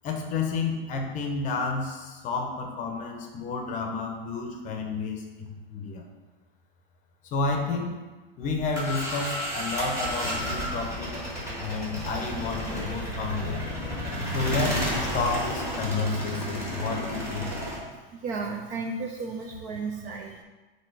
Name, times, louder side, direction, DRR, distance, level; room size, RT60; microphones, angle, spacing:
voice 1, 0.0-6.0 7.3-8.0 8.4-11.2 11.6-13.6 14.3-17.5, left 4 dB, 25° left, 3 dB, 0.8 m, -30 dB
sound 1, 8.4-17.8, equal, 10° right, 1.3 m, -32 dB
voice 2, 18.1-20.4, right 4 dB, 30° right, 2 dB, 0.4 m, -34 dB
7.4 x 2.9 x 4.7 m, 1.2 s
supercardioid pair, 150°, 30 cm